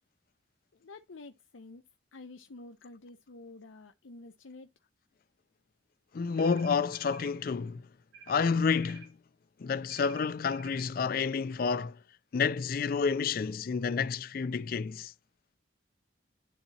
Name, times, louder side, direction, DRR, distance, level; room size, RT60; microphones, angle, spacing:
voice 1, 0.7-1.8 2.1-4.7, left 3 dB, 85° left, 0.7 m, -49 dB
voice 2, 6.1-7.8 8.3-9.1 9.6-12.0 12.3-15.1, left 5 dB, 50° left, 0.3 m, -29 dB
sound 1, 6.4-7.4 8.1-9.1 9.9-10.9, right 6 dB, 80° right, 5.2 m, -52 dB
11.5 x 4.1 x 2.8 m
head